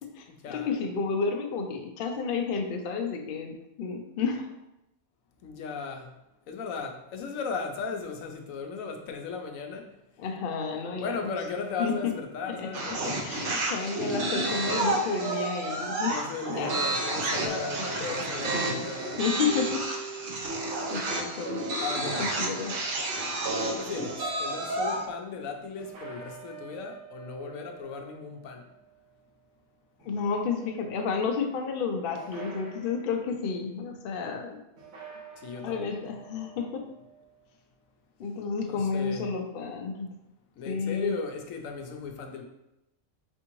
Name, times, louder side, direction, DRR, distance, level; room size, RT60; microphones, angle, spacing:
voice 1, 0.0-4.5 10.2-11.2 11.8-12.1 12.4-16.8 17.5-18.9 19.2-20.1 20.9-21.6 22.4-22.7 30.0-34.6 35.6-36.9 38.2-40.1 40.7-41.1, left 5 dB, 60° left, 3 dB, 0.6 m, -31 dB
voice 2, 5.4-6.1 6.5-9.9 10.9-13.3 16.1-19.2 21.8-22.3 23.6-28.6 35.4-35.8 36.0-36.1 38.7-39.3 40.6-42.5, left 5 dB, 75° left, 4 dB, 1.0 m, -36 dB
sound 1, 12.7-25.1, right 2 dB, 55° right, 0.7 m, -31 dB
sound 2, 17.5-22.1, right 4 dB, 35° right, 1.2 m, -40 dB
sound 3, 21.9-24.0 25.8-29.5 30.0-31.0 32.1-33.3 34.8-37.5, right 6 dB, 75° right, 1.4 m, -49 dB
4.4 x 3.5 x 3.0 m, 0.88 s
omnidirectional pair, 1.4 m